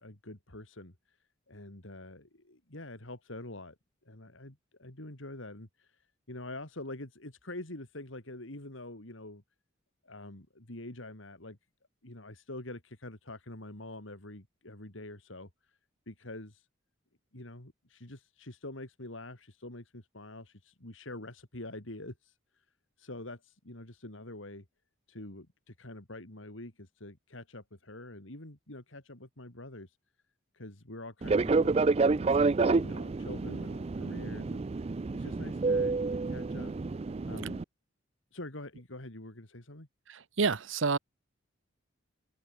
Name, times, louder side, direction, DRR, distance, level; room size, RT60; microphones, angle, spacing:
voice 1, 0.0-3.8 4.0-9.4 10.0-11.6 12.0-15.8 16.1-16.7 17.3-22.6 23.0-24.6 25.1-30.0 30.5-36.7 37.2-37.6 38.3-39.9, left 2 dB, 75° left, 3.3 m, -46 dB
Fixed-wing aircraft airplane, 31.2-37.6, right 3 dB, 30° right, 0.3 m, -29 dB
voice 2, 40.1-41.0, right 4 dB, 70° right, 0.9 m, -29 dB
open air
head